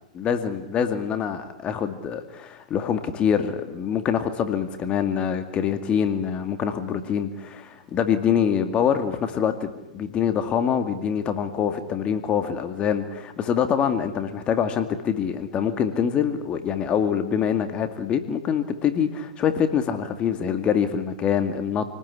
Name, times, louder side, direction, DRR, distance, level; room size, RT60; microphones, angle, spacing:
voice 1, 0.1-21.8, left 8 dB, 25° left, 8 dB, 2.3 m, -25 dB
28.5 x 19.5 x 10.0 m, 0.95 s
hypercardioid pair, 125°, 4 cm